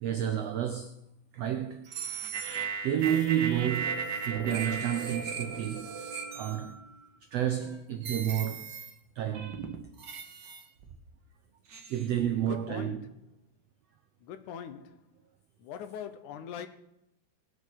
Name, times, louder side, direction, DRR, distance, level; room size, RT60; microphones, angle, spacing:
voice 1, 0.0-1.0 1.3-1.9 2.8-5.9 6.3-6.8 7.3-8.7 9.1-9.6 11.9-13.0, right 10 dB, 85° right, 1.4 m, -30 dB
sound 1, 1.9-7.1 7.6-7.7 8.0-8.9 9.3-11.0 11.7-12.1, right 6 dB, 55° right, 1.2 m, -37 dB
voice 2, 12.5-13.1 14.2-15.0 15.6-16.7, left 8 dB, 70° left, 2.1 m, -41 dB
19.0 x 7.2 x 6.5 m
omnidirectional pair, 4.0 m